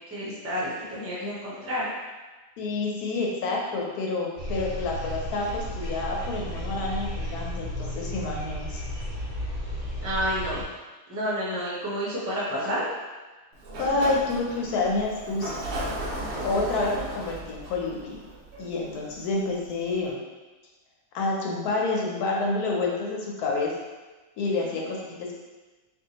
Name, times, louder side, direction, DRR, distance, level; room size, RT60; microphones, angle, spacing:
voice 1, 0.1-1.9 10.0-10.6 11.1-12.9 24.6-24.9, equal, 20° right, -6 dB, 0.3 m, -30 dB
voice 2, 2.6-8.8 13.8-15.6 16.4-18.2 18.6-20.2 21.1-23.7 24.4-25.3, left 3 dB, 70° left, -1 dB, 1.2 m, -28 dB
sound 1, 4.4-10.6, equal, 25° left, 1.0 m, -33 dB
Sliding door, 13.5-19.2, right 1 dB, 85° right, 0.5 m, -35 dB
3.8 x 2.6 x 2.8 m, 1.2 s
omnidirectional pair, 1.8 m